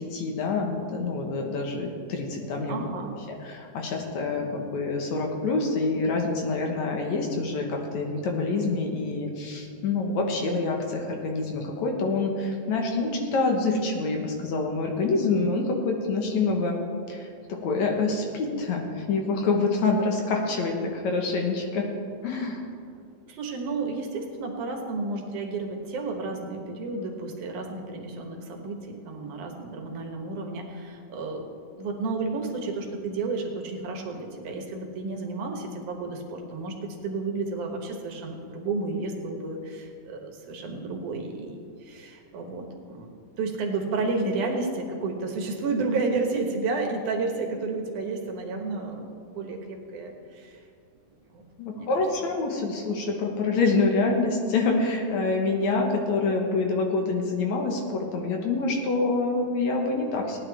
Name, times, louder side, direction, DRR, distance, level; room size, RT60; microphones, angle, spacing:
voice 1, 0.0-2.8 3.3-16.8 17.1-21.9 22.2-22.6 51.6-60.4, left 3 dB, 65° left, 1 dB, 2.3 m, -26 dB
voice 2, 2.7-3.2 23.3-50.6 51.3-51.4 51.7-51.9, right 3 dB, 70° right, 2 dB, 2.6 m, -32 dB
18.0 x 10.0 x 3.5 m, 2.4 s
omnidirectional pair, 3.7 m